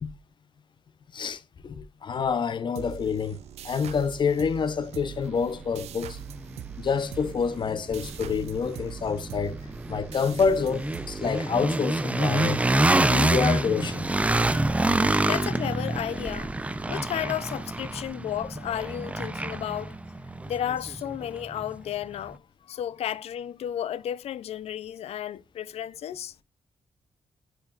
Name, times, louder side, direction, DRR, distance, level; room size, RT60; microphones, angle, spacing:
voice 1, 1.1-3.4 3.6-6.2 6.8-9.6 9.9-12.6 13.1-14.1, left 6 dB, 45° left, 0.8 m, -27 dB
sound 1, 2.7-12.0, right 11 dB, 85° right, 0.4 m, -42 dB
sound 2, 5.2-5.3 5.8-21.7, right 2 dB, 10° right, 0.5 m, -27 dB
voice 2, 15.2-16.5 16.9-20.0 20.5-26.3, left 10 dB, 75° left, 0.5 m, -33 dB
10.0 x 4.6 x 2.4 m
cardioid pair, 95°, 11 cm